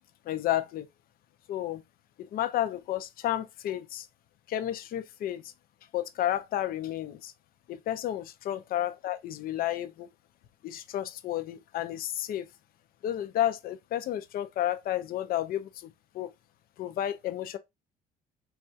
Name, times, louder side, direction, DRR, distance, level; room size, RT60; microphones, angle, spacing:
voice 1, 0.3-0.9 1.5-1.8 2.2-4.1 4.5-5.5 5.9-7.3 7.7-10.1 10.6-12.5 13.0-16.3 16.8-17.6, left 12 dB, 60° left, 0.5 m, -31 dB
4.0 x 2.3 x 2.7 m
cardioid pair, 110°, 17 cm